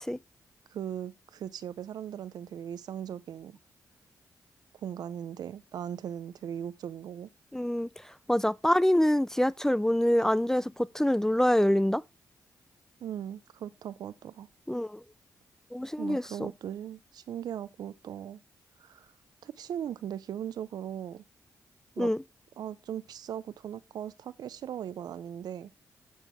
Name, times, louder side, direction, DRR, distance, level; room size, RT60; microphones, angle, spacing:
voice 1, 0.7-3.6 4.8-7.3 13.0-14.5 16.0-18.4 18.8-19.1 19.4-21.2 22.0-22.1 22.6-25.7, right 9 dB, 75° right, 0.5 m, -38 dB
voice 2, 7.5-12.0 14.7-15.0 15.7-16.5 22.0-22.2, left 1 dB, 5° left, 0.3 m, -26 dB
10.0 x 4.5 x 4.5 m
cardioid pair, 55°, 7 cm